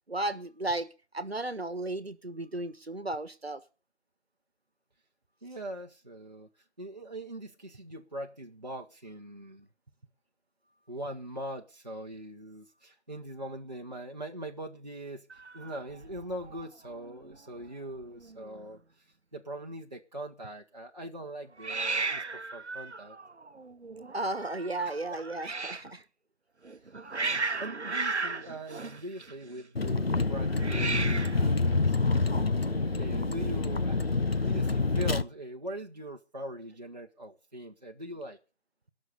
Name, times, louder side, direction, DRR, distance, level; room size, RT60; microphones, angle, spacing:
voice 1, 0.1-0.9 1.1-3.6 24.1-26.0, right 2 dB, 65° right, 1.4 m, -34 dB
voice 2, 5.4-6.5 6.8-9.7 10.9-15.3 15.5-23.2 24.8-25.2 27.1-27.3 27.6-31.9 32.2-34.0 34.4-38.4, right 1 dB, 40° right, 1.0 m, -41 dB
Hiss, 15.3-16.6 16.9-17.4 17.6-17.7 17.9-18.6 21.6-25.9 26.6-29.6 30.5-31.5, right 3 dB, 80° right, 0.9 m, -35 dB
Vehicle, 29.8-35.2, left 3 dB, 60° left, 0.8 m, -27 dB
19.5 x 6.5 x 6.7 m
figure-of-eight pair, 170°, 33 cm